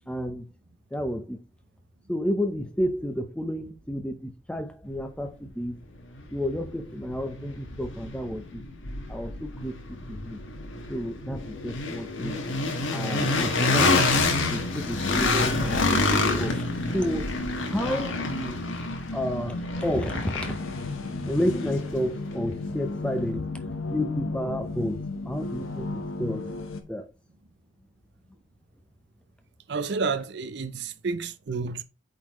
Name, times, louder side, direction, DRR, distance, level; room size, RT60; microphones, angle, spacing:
voice 1, 0.1-0.5 0.9-1.4 2.1-5.8 6.3-8.6 9.1-9.8 10.1-10.4 10.9-12.4 12.9-14.1 14.5-16.7 16.9-17.4 17.6-18.6 19.1-20.6 21.3-23.5 23.9-26.5 26.9-27.1, equal, 5° left, 0.6 m, -31 dB
sound 1, 6.2-6.3 6.7-22.7, left 3 dB, 70° left, 1.3 m, -28 dB
sound 2, 14.9-26.8, left 2 dB, 85° left, 1.0 m, -34 dB
voice 2, 29.7-31.8, right 4 dB, 55° right, 0.5 m, -30 dB
8.4 x 4.0 x 3.0 m
head